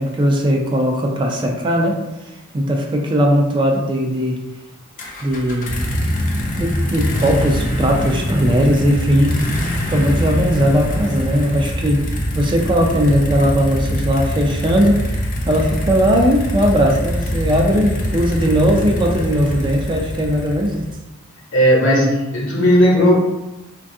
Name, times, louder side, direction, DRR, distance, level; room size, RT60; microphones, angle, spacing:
voice 1, 0.0-2.0 2.5-4.4 5.2-5.8 6.6-9.4 9.9-12.1 12.3-15.0 15.5-20.9, equal, 25° right, 1 dB, 0.3 m, -18 dB
sound 1, 5.0-20.9, equal, 40° left, 0.5 m, -23 dB
voice 2, 21.5-23.1, equal, 65° left, -3 dB, 0.9 m, -14 dB
3.3 x 2.3 x 2.6 m, 0.97 s
head